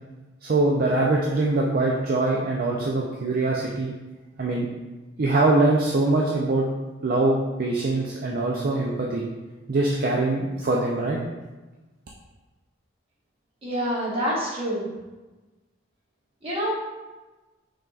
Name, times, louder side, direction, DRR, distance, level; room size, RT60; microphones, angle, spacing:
voice 1, 0.4-3.9 4.4-4.7 5.2-6.7 7.0-9.3 9.7-11.2, right 2 dB, 45° right, -2 dB, 0.4 m, -23 dB
voice 2, 13.6-14.8 16.4-16.7, equal, 30° right, -6 dB, 1.3 m, -26 dB
5.6 x 3.6 x 2.4 m, 1.2 s
head